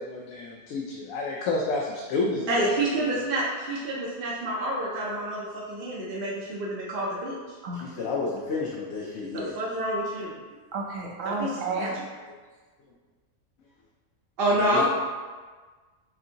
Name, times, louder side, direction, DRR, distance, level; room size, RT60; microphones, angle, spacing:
voice 1, 0.0-3.2, left 3 dB, 90° left, -2 dB, 1.0 m, -30 dB
voice 2, 2.5-7.4 9.3-10.3 11.2-11.9 14.4-14.8, right 1 dB, 55° right, -5 dB, 0.7 m, -28 dB
voice 3, 7.8-9.5 14.5-14.8, left 4 dB, 65° left, -5 dB, 0.9 m, -31 dB
voice 4, 10.7-12.3, right 3 dB, 70° right, -1 dB, 1.1 m, -32 dB
6.1 x 2.6 x 2.8 m, 1.4 s
omnidirectional pair, 1.4 m